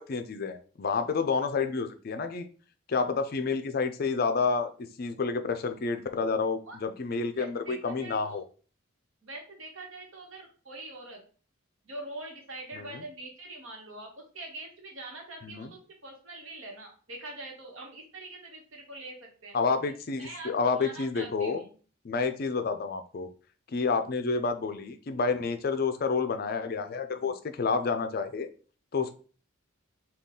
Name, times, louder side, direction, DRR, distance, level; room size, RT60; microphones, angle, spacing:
voice 1, 0.0-2.4 2.9-4.7 5.0-8.4 12.8-13.0 15.4-15.7 19.5-21.6 22.0-23.3 23.7-28.5 28.9-29.1, left 4 dB, 45° left, 8 dB, 0.4 m, -29 dB
voice 2, 7.4-8.4 9.2-11.2 11.8-14.1 14.3-19.6 20.2-21.7, right 2 dB, 70° right, 0 dB, 1.2 m, -44 dB
3.8 x 2.3 x 3.6 m, 0.39 s
head